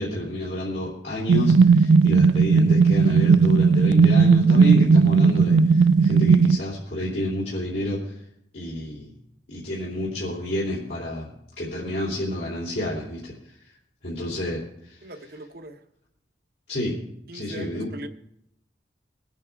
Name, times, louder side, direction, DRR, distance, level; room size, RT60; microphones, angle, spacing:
voice 1, 0.0-8.1 8.5-9.1 9.5-11.3 11.6-13.3 14.0-15.0 16.7-17.0 17.3-17.9, left 1 dB, 80° left, -7 dB, 3.0 m, -30 dB
sound 1, 1.3-6.6, right 5 dB, 85° right, 0.3 m, -16 dB
voice 2, 15.0-15.8 17.3-18.1, right 1 dB, 60° right, 8 dB, 0.9 m, -40 dB
20.5 x 9.1 x 3.5 m, 0.77 s
head